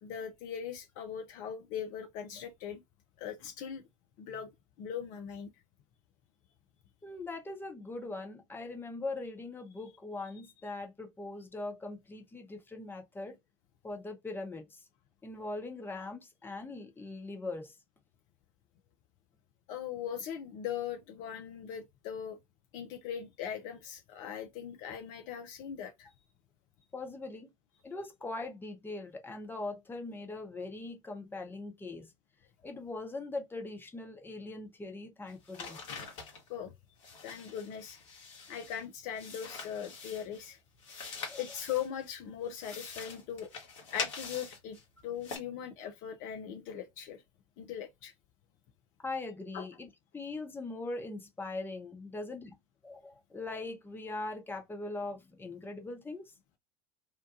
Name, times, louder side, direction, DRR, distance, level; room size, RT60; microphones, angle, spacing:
voice 1, 0.0-2.8 3.2-3.8 4.2-4.5 4.8-5.5 19.7-22.4 22.7-26.1 36.5-36.7 37.2-38.0 38.5-40.6 41.4-43.5 43.9-44.8 45.0-47.2 47.6-48.1 49.5-49.7, left 9 dB, 50° left, 0.5 m, -40 dB
voice 2, 7.0-13.4 13.8-14.8 15.2-17.7 26.9-27.5 27.8-32.1 32.6-35.8 41.3-41.4 49.0-52.6 52.8-56.2, left 2 dB, 10° left, 0.8 m, -41 dB
sound 1, 35.3-36.5 37.0-38.8 39.1-40.5 40.8-42.1 42.5-44.8 45.2-45.4, left 4 dB, 65° left, 1.1 m, -44 dB
2.9 x 2.2 x 2.4 m
figure-of-eight pair, 70°, 17 cm